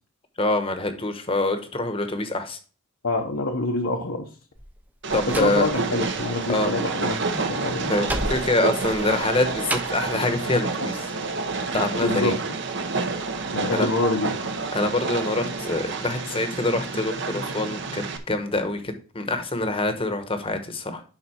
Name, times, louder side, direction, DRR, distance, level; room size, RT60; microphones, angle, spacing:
voice 1, 0.4-2.6 5.1-5.7 6.5-6.7 7.9-11.1 11.7-12.3 13.7-13.9 14.7-21.0, left 2 dB, 25° left, 8 dB, 1.0 m, -25 dB
voice 2, 3.0-4.3 5.3-7.9 12.0-12.4 13.5-14.4, left 2 dB, 70° left, 2 dB, 0.9 m, -26 dB
Slam, 4.5-6.4 6.6-10.1, right 1 dB, 10° right, 0.5 m, -34 dB
Train, 5.0-18.2, right 3 dB, 55° right, 0.9 m, -29 dB
11.0 x 4.1 x 4.3 m, 0.37 s
head